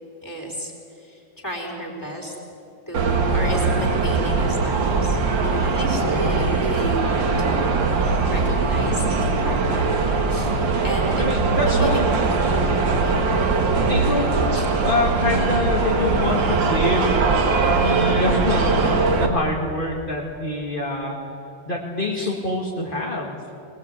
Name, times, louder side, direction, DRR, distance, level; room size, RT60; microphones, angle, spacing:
voice 1, 0.2-0.7 1.0-2.3 2.9-9.9 10.3-10.5 10.8-11.3 11.7-12.0 13.0-13.2 14.5-14.7 22.2-22.3, right 1 dB, 10° left, 0 dB, 4.2 m, -32 dB
sound 1, 2.9-19.3, right 4 dB, 90° right, 2.4 m, -21 dB
voice 2, 11.2-12.0 13.8-14.3 14.8-17.1 17.4-21.2 21.7-23.4, left 2 dB, 30° left, -2 dB, 2.2 m, -25 dB
22.0 x 20.0 x 8.4 m, 2.6 s
omnidirectional pair, 2.0 m